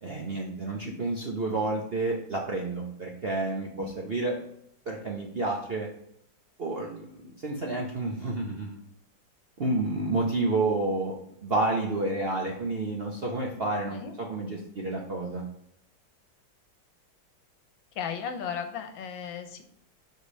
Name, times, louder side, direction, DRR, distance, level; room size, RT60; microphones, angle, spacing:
voice 1, 0.0-4.4 4.9-5.9 6.6-8.8 9.6-11.1 11.4-15.4, right 2 dB, 50° right, -1 dB, 0.7 m, -30 dB
voice 2, 17.9-19.6, left 7 dB, 80° left, 7 dB, 1.6 m, -35 dB
5.0 x 4.4 x 5.3 m, 0.74 s
omnidirectional pair, 2.1 m